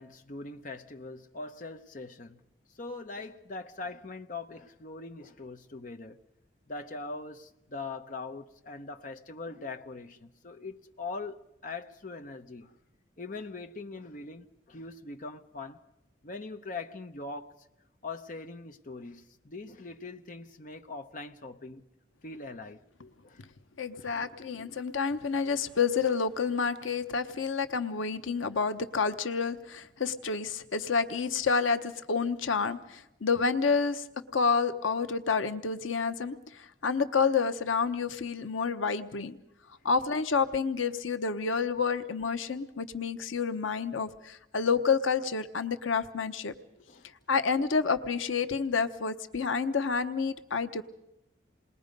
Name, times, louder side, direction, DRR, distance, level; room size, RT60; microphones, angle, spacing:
voice 1, 0.0-2.4 2.7-6.2 6.7-12.7 13.2-15.8 16.2-17.6 18.0-21.8 22.2-22.8 23.2-23.4 23.9-24.1 46.8-47.1, left 3 dB, 45° left, 0.9 m, -42 dB
voice 2, 23.8-34.0 34.3-39.4 39.8-46.5 47.3-50.8, left 5 dB, 90° left, 0.9 m, -29 dB
28.0 x 20.5 x 5.3 m
head